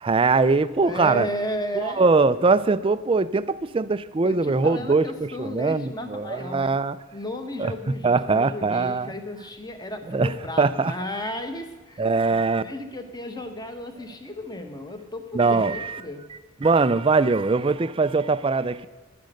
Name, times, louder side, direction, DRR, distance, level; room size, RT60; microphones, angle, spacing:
voice 1, 0.0-1.3 1.7-7.0 7.6-7.7 8.0-9.1 10.1-10.9 12.0-12.6 15.3-16.0 16.6-18.9, right 4 dB, 25° right, 15 dB, 0.3 m, -22 dB
voice 2, 0.8-2.1 4.2-6.7 7.1-16.3, left 1 dB, 20° left, 6 dB, 1.0 m, -34 dB
11.0 x 10.5 x 6.4 m, 1.3 s
head